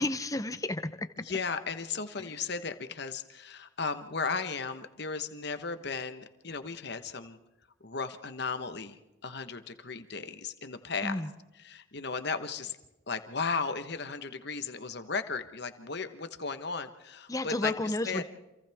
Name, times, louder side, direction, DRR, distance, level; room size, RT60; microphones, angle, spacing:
voice 1, 0.0-1.1 2.2-2.4 11.0-11.3 17.3-18.2, left 2 dB, 15° left, 11 dB, 0.7 m, -32 dB
voice 2, 1.3-7.4 7.8-11.1 11.6-12.8 13.1-17.7 18.0-18.2, left 4 dB, 50° left, 9 dB, 1.3 m, -35 dB
28.5 x 27.0 x 3.6 m, 1.0 s
head